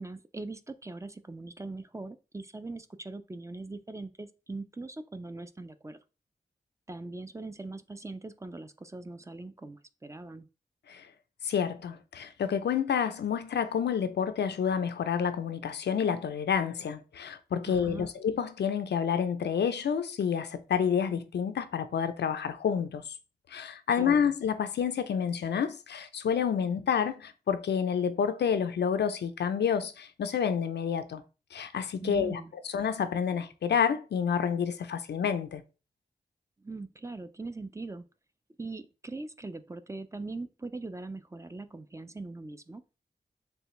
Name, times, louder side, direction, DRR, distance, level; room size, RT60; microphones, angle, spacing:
voice 1, 0.0-6.0 6.9-10.5 17.7-18.1 23.9-24.3 32.0-32.5 36.6-38.1 38.6-42.8, right 3 dB, 15° right, 0.4 m, -41 dB
voice 2, 11.4-23.0 23.5-31.2 31.5-32.4 32.7-35.6, left 7 dB, 90° left, 0.4 m, -29 dB
3.4 x 3.3 x 3.0 m
wide cardioid pair, 65°, 17 cm